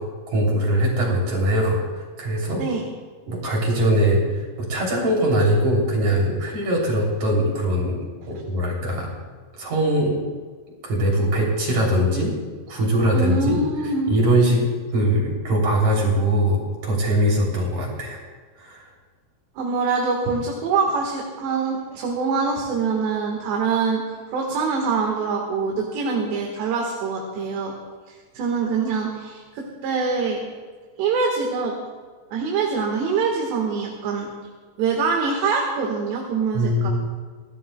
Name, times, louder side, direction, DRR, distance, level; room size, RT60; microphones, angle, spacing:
voice 1, 0.3-1.8 2.2-2.6 3.3-8.0 8.3-9.1 9.6-10.2 10.8-12.3 12.7-13.6 14.1-14.6 14.9-18.2 18.6-18.9 36.5-36.9, right 1 dB, 45° right, -2 dB, 4.1 m, -21 dB
voice 2, 13.1-14.2 19.6-24.0 24.3-27.7 28.4-30.4 31.0-31.7 32.3-34.3 34.8-36.9, right 4 dB, 80° right, -1 dB, 3.7 m, -24 dB
25.5 x 16.5 x 2.3 m, 1.5 s
omnidirectional pair, 5.0 m